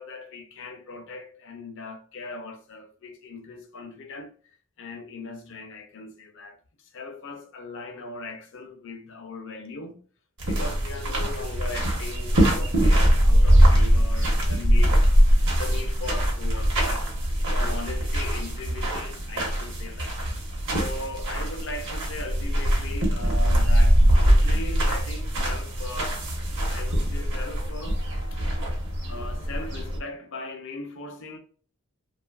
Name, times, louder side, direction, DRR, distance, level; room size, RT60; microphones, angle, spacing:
voice 1, 0.0-4.3 4.8-10.0 10.5-15.0 15.4-17.1 17.5-20.5 20.7-26.2 26.7-28.0 28.3-28.7 29.1-31.4, left 3 dB, 60° left, 0.6 m, -39 dB
sound 1, 10.4-30.0, equal, 60° right, 0.9 m, -22 dB
2.8 x 2.4 x 2.3 m
head